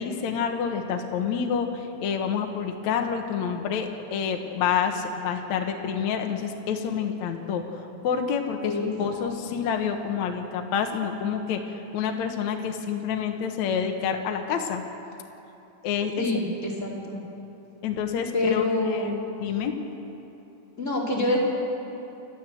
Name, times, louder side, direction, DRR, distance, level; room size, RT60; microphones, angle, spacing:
voice 1, 0.0-8.7 9.0-14.8 15.8-16.3 17.8-19.7, left 7 dB, 60° left, 4 dB, 2.3 m, -28 dB
voice 2, 8.6-9.2 16.2-17.2 18.3-19.1 20.8-21.4, left 2 dB, 20° left, -4 dB, 3.6 m, -26 dB
29.0 x 13.0 x 7.8 m, 2.9 s
omnidirectional pair, 4.0 m